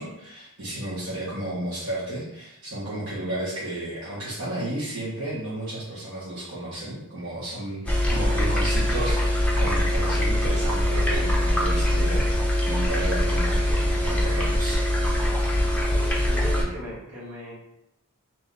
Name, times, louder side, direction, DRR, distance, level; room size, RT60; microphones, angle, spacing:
voice 1, 0.0-14.8, right 1 dB, 70° right, -9 dB, 1.3 m, -33 dB
sound 1, 7.9-16.6, left 1 dB, 5° left, 0.6 m, -23 dB
voice 2, 15.9-17.5, right 1 dB, 85° right, -6 dB, 1.5 m, -38 dB
3.2 x 2.9 x 3.8 m, 0.84 s
head